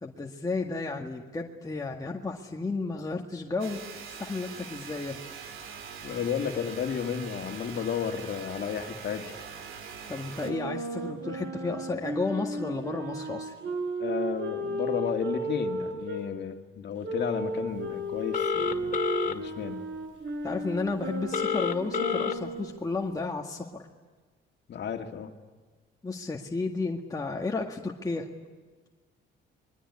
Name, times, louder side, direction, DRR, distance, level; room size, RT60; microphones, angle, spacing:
voice 1, 0.0-3.8 4.1-5.2 10.1-13.5 20.4-23.8 26.0-28.3, left 3 dB, 20° left, 0 dB, 1.9 m, -32 dB
sound 1, 3.6-10.5, right 6 dB, 90° right, 3.0 m, -43 dB
voice 2, 6.0-9.5 14.0-19.0 19.3-19.9 24.7-25.3, left 7 dB, 60° left, 5 dB, 2.2 m, -33 dB
Wind instrument woodwind instrument, 10.4-16.2 17.0-22.8, right 2 dB, 70° right, 4.9 m, -34 dB
Telephone, 18.3-19.3 21.3-22.3, left 7 dB, 45° left, 2.1 m, -28 dB
26.5 x 22.0 x 9.8 m, 1.4 s
cardioid pair, 90°, 20 cm